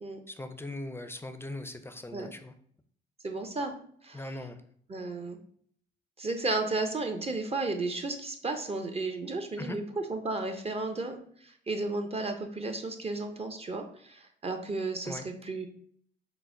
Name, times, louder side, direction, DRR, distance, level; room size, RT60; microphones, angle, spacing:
voice 1, 0.3-2.5 4.1-4.6 9.6-9.8 15.0-15.3, left 2 dB, 10° left, 8 dB, 0.5 m, -40 dB
voice 2, 3.2-3.7 4.0-4.2 4.9-5.4 6.2-15.7, right 3 dB, 30° right, 5 dB, 0.7 m, -33 dB
3.9 x 2.1 x 4.4 m, 0.62 s
supercardioid pair, 55°, 21 cm